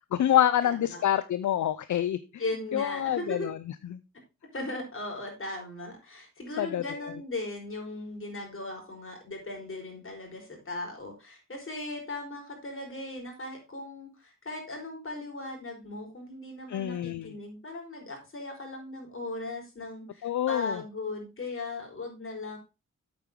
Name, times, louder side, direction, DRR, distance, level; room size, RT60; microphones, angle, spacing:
voice 1, 0.1-2.2 2.7-3.6 3.9-4.0 6.6-6.8 16.7-17.3 20.2-20.8, left 11 dB, 70° left, 14 dB, 0.6 m, -26 dB
voice 2, 0.6-1.0 2.4-3.5 4.5-22.6, left 2 dB, 45° left, 1 dB, 4.9 m, -38 dB
8.2 x 8.0 x 3.7 m, 0.28 s
cardioid pair, 65°, 31 cm